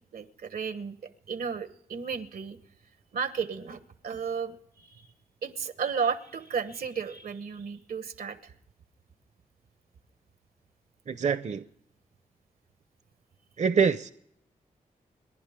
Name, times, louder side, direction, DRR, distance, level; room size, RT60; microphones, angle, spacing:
voice 1, 0.1-2.6 3.1-5.1 5.4-8.5, right 6 dB, 80° right, 11 dB, 1.1 m, -34 dB
voice 2, 11.1-11.6 13.6-14.1, right 6 dB, 50° right, 12 dB, 0.7 m, -25 dB
29.5 x 11.0 x 3.6 m, 0.73 s
cardioid pair, 60°, 15 cm